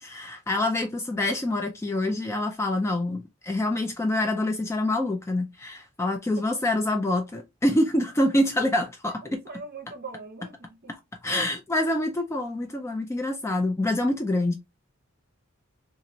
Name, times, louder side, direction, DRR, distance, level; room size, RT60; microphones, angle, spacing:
voice 1, 0.0-9.4 10.9-11.0 11.2-14.5, left 1 dB, 15° left, 0.3 m, -26 dB
voice 2, 9.2-11.0, right 4 dB, 45° right, 0.7 m, -41 dB
3.0 x 2.4 x 2.6 m
head